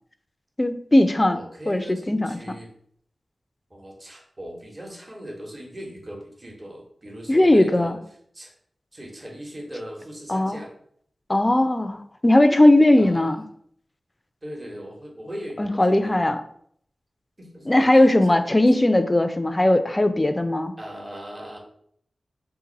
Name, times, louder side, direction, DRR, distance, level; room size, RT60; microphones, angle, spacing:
voice 1, 0.6-1.4 1.7-2.4 7.3-8.0 10.3-10.6 11.3-13.4 15.6-16.4 17.7-20.7, left 1 dB, 25° left, 10 dB, 0.3 m, -18 dB
voice 2, 1.2-2.7 3.7-7.9 8.3-8.5 8.9-10.7 12.9-13.2 14.4-16.3 17.4-18.1 20.8-21.6, equal, 35° right, -1 dB, 1.0 m, -39 dB
2.6 x 2.5 x 3.9 m, 0.65 s
cardioid pair, 50°, 0 cm